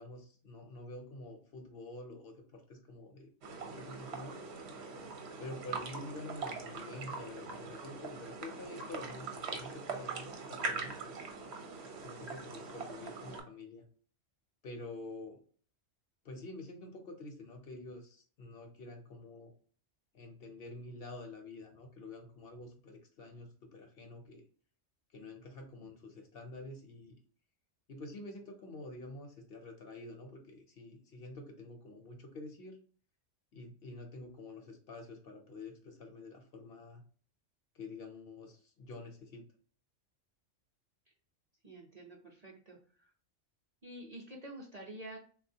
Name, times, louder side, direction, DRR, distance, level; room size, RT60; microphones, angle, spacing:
voice 1, 0.0-4.4 5.4-11.2 12.0-13.8 14.6-15.4 16.2-19.5 20.1-24.4 25.1-27.2 27.9-32.8 33.5-37.0 37.7-39.4, left 2 dB, 60° left, 3 dB, 0.8 m, -48 dB
sound 1, 3.4-13.4, right 4 dB, 65° right, 0.9 m, -42 dB
voice 2, 41.6-43.1 43.8-45.2, right 1 dB, 40° right, -1 dB, 0.6 m, -49 dB
3.6 x 2.3 x 2.6 m, 0.44 s
omnidirectional pair, 1.2 m